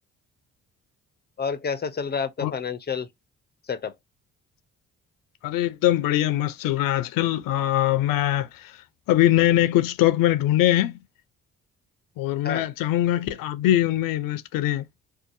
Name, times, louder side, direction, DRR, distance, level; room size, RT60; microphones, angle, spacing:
voice 1, 1.4-3.1 3.7-4.0 12.4-12.6, left 6 dB, 30° left, 0.5 m, -29 dB
voice 2, 5.4-11.0 12.2-14.9, left 13 dB, 80° left, 0.5 m, -22 dB
2.7 x 2.2 x 2.5 m
supercardioid pair, 60°, 33 cm